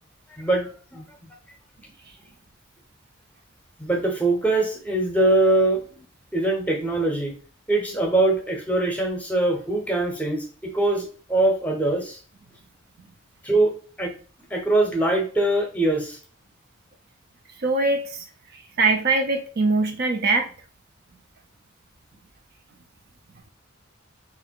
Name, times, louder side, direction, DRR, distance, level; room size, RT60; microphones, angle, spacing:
voice 1, 0.4-1.3 3.8-6.1 6.3-7.3 7.7-12.2 13.4-14.1 14.5-16.2, right 2 dB, 5° left, 1 dB, 0.8 m, -23 dB
voice 2, 17.6-18.2 18.8-20.5, right 3 dB, 50° right, 5 dB, 0.5 m, -22 dB
3.2 x 2.6 x 4.5 m, 0.39 s
head